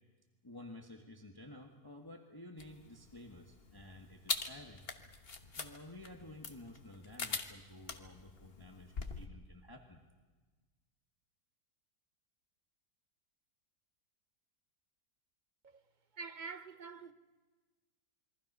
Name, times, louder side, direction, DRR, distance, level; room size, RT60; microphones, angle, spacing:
voice 1, 0.4-4.8 5.5-10.0, left 1 dB, 15° left, 1.5 m, -52 dB
sound 1, 2.6-9.3, left 4 dB, 40° left, 1.4 m, -43 dB
voice 2, 16.1-17.1, right 4 dB, 40° right, 0.8 m, -46 dB
28.0 x 23.0 x 5.6 m
omnidirectional pair, 1.6 m